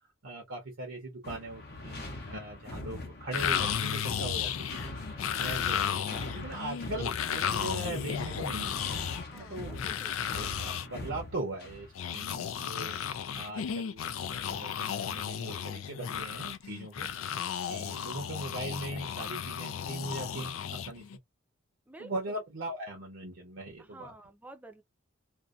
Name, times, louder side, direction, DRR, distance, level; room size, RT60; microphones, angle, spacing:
voice 1, 0.2-4.8 5.4-9.0 9.3-9.8 10.3-17.1 17.7-21.0 22.0-24.1, right 1 dB, 70° right, 0.8 m, -40 dB
sound 1, 1.2-12.0, left 2 dB, 55° left, 0.7 m, -41 dB
sound 2, 3.3-10.9 12.0-21.2, left 8 dB, 90° left, 0.4 m, -34 dB
voice 2, 9.3-10.1 21.9-22.4 23.8-24.8, right 2 dB, 10° right, 0.4 m, -50 dB
2.6 x 2.1 x 2.4 m
head